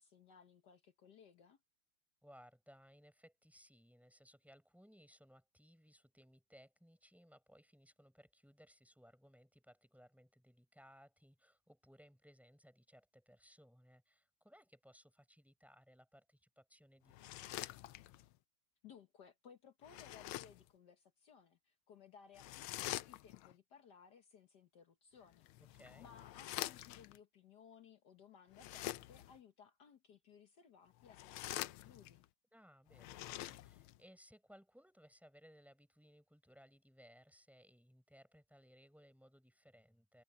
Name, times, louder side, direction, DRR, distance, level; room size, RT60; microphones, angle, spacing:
voice 1, 0.0-1.6 18.8-25.5 26.0-32.3, left 7 dB, 55° left, 1.5 m, -61 dB
voice 2, 2.2-17.8 25.6-26.1 32.5-40.2, equal, ahead, 5.2 m, -64 dB
sound 1, 17.1-18.3 19.8-20.7 22.4-23.5 25.3-27.2 28.5-29.4 31.0-32.2 32.9-34.0, left 15 dB, 75° left, 1.4 m, -46 dB
omnidirectional pair, 2.4 m